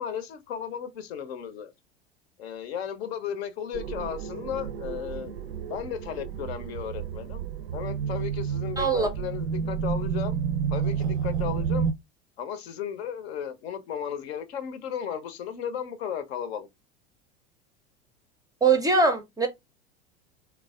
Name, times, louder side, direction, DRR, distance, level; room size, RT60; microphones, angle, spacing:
voice 1, 0.0-1.7 2.4-5.3 5.7-7.5 7.7-10.4 10.7-11.9 12.4-16.7, left 8 dB, 70° left, 0.6 m, -35 dB
sound 1, 3.7-11.9, right 7 dB, 75° right, 0.5 m, -30 dB
voice 2, 8.8-9.1 18.6-19.5, right 4 dB, 10° right, 0.4 m, -22 dB
3.1 x 2.3 x 2.3 m
hypercardioid pair, 80°, 33 cm